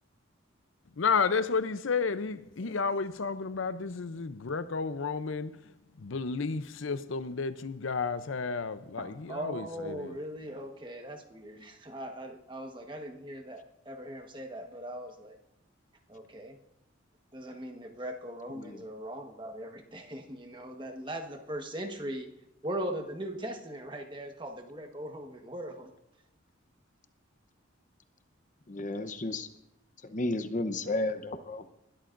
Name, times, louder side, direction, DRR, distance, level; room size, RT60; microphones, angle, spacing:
voice 1, 1.0-10.2, left 5 dB, 75° left, 0.6 m, -32 dB
voice 2, 9.0-15.4 16.1-16.6 17.3-22.3 22.6-25.9, right 1 dB, 25° right, 1.3 m, -40 dB
voice 3, 28.7-29.5 30.0-31.7, left 2 dB, 40° left, 0.8 m, -33 dB
21.0 x 13.0 x 2.6 m
head